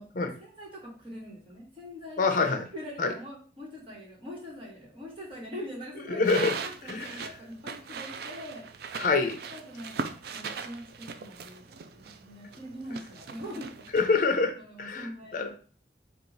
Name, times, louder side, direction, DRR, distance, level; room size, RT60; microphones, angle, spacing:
voice 1, 0.4-2.3 2.7-6.2 6.6-8.7 9.5-13.9 14.6-15.5, equal, 30° right, -4 dB, 1.4 m, -43 dB
voice 2, 2.2-2.6 3.0-3.1 6.1-6.5 6.9-7.3 9.0-9.4 13.9-14.5 14.8-15.5, left 4 dB, 50° left, 6 dB, 0.6 m, -26 dB
sound 1, 6.2-14.2, right 5 dB, 60° right, 0.4 m, -39 dB
4.5 x 2.4 x 3.9 m, 0.42 s
head